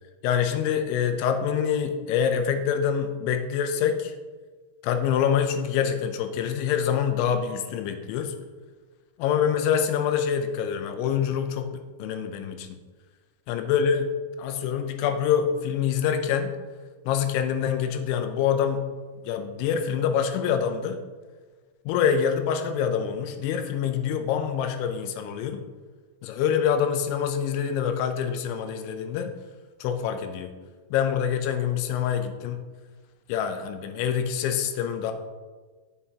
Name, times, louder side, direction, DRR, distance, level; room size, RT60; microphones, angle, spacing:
voice 1, 0.2-4.1 4.8-8.3 9.2-12.8 13.5-14.1 14.4-16.5 17.1-18.9 19.3-21.0 21.9-25.6 26.2-29.3 29.8-30.5 30.9-32.6 33.3-35.1, left 8 dB, 80° left, 7 dB, 2.9 m, -25 dB
9.8 x 7.5 x 2.9 m, 1.4 s
omnidirectional pair, 5.4 m